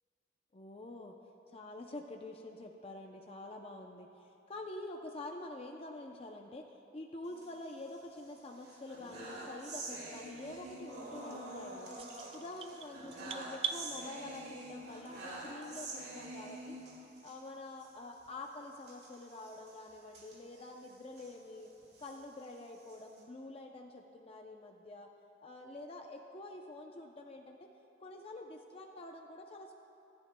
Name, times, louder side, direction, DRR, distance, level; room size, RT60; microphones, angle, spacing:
voice 1, 0.5-1.1 1.5-16.8 17.2-21.7 22.0-25.1 25.4-27.7 28.0-29.7, left 2 dB, 30° left, 2 dB, 0.5 m, -47 dB
sound 1, 7.3-8.2 8.6-17.4 17.7-17.9 18.1-18.3 18.8-21.3 21.8-23.2, right 2 dB, 60° right, 2.2 m, -47 dB
sound 2, 12.0-13.8, right 8 dB, 30° right, 0.4 m, -40 dB
26.0 x 9.9 x 2.2 m, 2.8 s
head